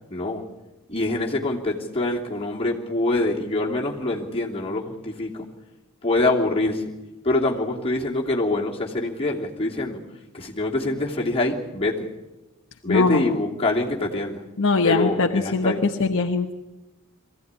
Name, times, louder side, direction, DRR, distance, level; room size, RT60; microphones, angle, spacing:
voice 1, 0.1-0.4 0.9-5.5 6.0-6.8 7.2-10.0 10.3-12.1 12.8-14.4 14.8-15.8, left 2 dB, 25° left, -2 dB, 3.0 m, -25 dB
voice 2, 12.9-13.4 14.6-16.5, left 3 dB, 60° left, 3 dB, 1.1 m, -21 dB
23.0 x 16.0 x 9.6 m, 1.0 s
head